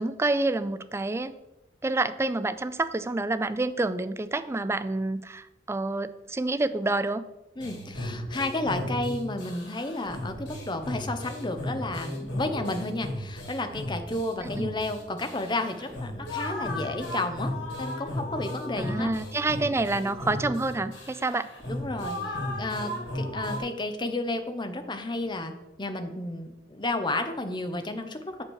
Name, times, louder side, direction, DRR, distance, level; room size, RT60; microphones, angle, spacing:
voice 1, 0.0-1.3 1.8-7.2 14.4-14.7 18.8-21.5, right 2 dB, 15° right, 13 dB, 0.3 m, -28 dB
sound 1, 7.6-23.6, left 1 dB, 80° left, 2.6 m, -35 dB
voice 2, 7.6-19.1 21.7-25.5 25.8-28.4, left 2 dB, 25° left, 7 dB, 0.8 m, -32 dB
7.2 x 5.2 x 6.4 m, 0.95 s
head